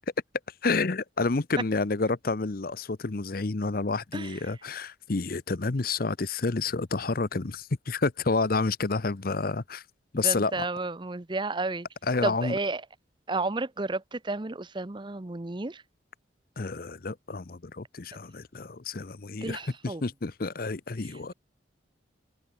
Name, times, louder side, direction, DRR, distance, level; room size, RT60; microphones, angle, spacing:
voice 1, 0.6-9.8 10.1-10.7 12.1-12.5 16.6-21.3, left 3 dB, 50° left, 0.8 m, -29 dB
voice 2, 10.2-11.9 12.2-12.8 13.3-15.8 19.4-20.0 21.0-21.3, right 3 dB, 25° right, 0.7 m, -32 dB
head